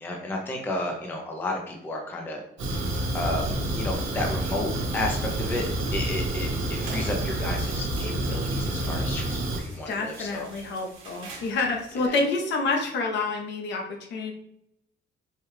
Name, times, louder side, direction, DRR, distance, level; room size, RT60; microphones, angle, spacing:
voice 1, 0.0-2.4 3.1-3.5 3.8-5.6 5.9-10.5 11.9-12.2, left 1 dB, 10° left, 1 dB, 0.4 m, -32 dB
Fire, 2.6-9.6, right 1 dB, 70° right, 1.1 m, -28 dB
sound 1, 5.3-12.1, right 3 dB, 90° right, 1.1 m, -46 dB
voice 2, 9.9-14.3, left 3 dB, 60° left, 2 dB, 0.8 m, -28 dB
4.5 x 2.3 x 3.1 m, 0.75 s
cardioid pair, 165°, 21 cm